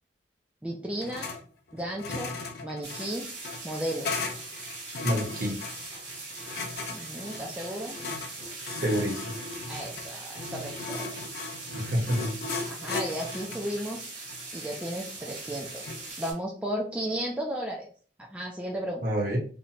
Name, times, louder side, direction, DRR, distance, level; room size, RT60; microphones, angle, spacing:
voice 1, 0.6-1.3 1.7-2.3 2.6-3.3 3.6-4.1 6.9-8.0 9.7-11.1 12.6-14.0 14.5-17.9 18.2-19.0, right 1 dB, 5° right, -1 dB, 0.3 m, -34 dB
sound 1, 1.0-1.4 1.7-16.1, left 3 dB, 60° left, 0.5 m, -37 dB
sound 2, 2.8-16.3, right 3 dB, 75° right, 1.2 m, -41 dB
voice 2, 5.0-5.6 8.7-9.4 11.7-12.3 19.0-19.4, equal, 50° right, -1 dB, 0.8 m, -28 dB
2.6 x 2.1 x 2.8 m, 0.41 s
head